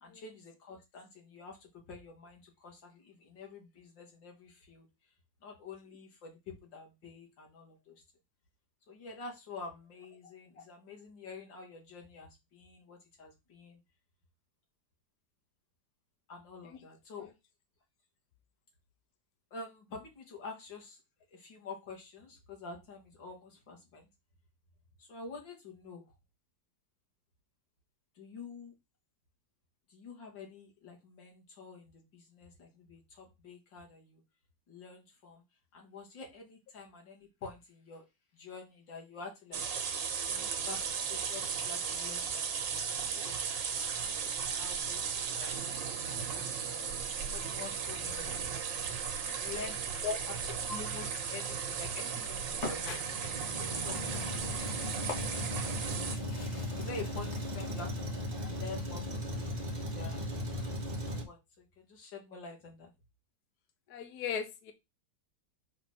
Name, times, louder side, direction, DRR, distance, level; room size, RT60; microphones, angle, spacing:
voice 1, 0.0-4.9 5.4-8.0 8.9-13.8 16.3-17.3 19.5-21.0 21.3-24.1 25.0-26.0 28.2-28.7 29.9-34.2 34.7-35.4 35.7-38.0 38.3-39.6 40.3-43.4 43.9-48.6 49.4-49.8 50.7-54.3 55.3-55.8 56.7-58.1 58.4-60.3 61.0-62.9, left 4 dB, 85° left, 0 dB, 2.7 m, -48 dB
sound 1, 39.5-56.2, right 6 dB, 85° right, 1.8 m, -36 dB
Truck, 52.5-61.2, left 1 dB, 25° right, 1.3 m, -37 dB
sound 2, 52.6-57.8, left 3 dB, 40° left, 1.8 m, -46 dB
voice 2, 63.9-64.7, left 6 dB, 65° left, 7 dB, 1.4 m, -37 dB
5.0 x 4.1 x 6.0 m, 0.22 s
omnidirectional pair, 1.9 m